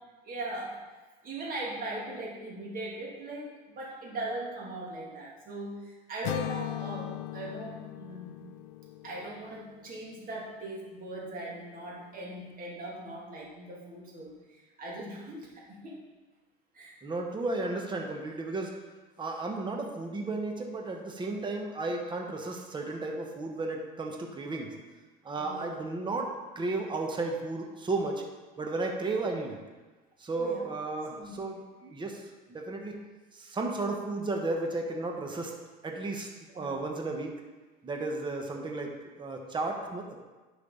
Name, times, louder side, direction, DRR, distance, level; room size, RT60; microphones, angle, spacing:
voice 1, 0.2-0.8 1.2-8.5 9.0-16.0 16.7-17.0 25.4-25.8 30.4-30.7 31.1-31.4 36.5-36.8, right 2 dB, 40° right, -3 dB, 2.5 m, -40 dB
sound 1, 6.2-10.3, left 14 dB, 85° left, 0.4 m, -39 dB
voice 2, 17.0-18.8 19.2-24.7 25.2-28.2 28.6-29.6 30.2-33.0 33.3-35.5 35.8-36.3 36.6-37.4 37.8-40.2, right 3 dB, 20° right, 2 dB, 1.1 m, -34 dB
10.5 x 5.4 x 3.9 m, 1.3 s
cardioid pair, 115°, 21 cm